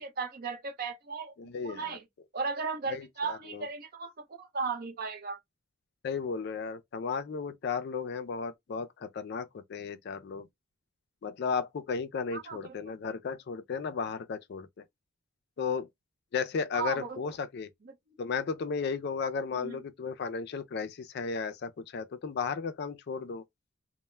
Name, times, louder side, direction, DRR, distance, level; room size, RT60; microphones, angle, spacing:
voice 1, 0.0-1.3 1.6-2.0 2.3-5.4 12.3-12.8 16.7-17.2 17.8-17.9 19.6-19.8, right 4 dB, 45° right, 0.5 m, -36 dB
voice 2, 1.4-2.0 2.9-3.7 6.0-10.5 11.2-14.8 15.6-15.9 16.3-17.7 18.2-23.4, left 5 dB, 55° left, 0.3 m, -34 dB
2.1 x 2.0 x 3.1 m
head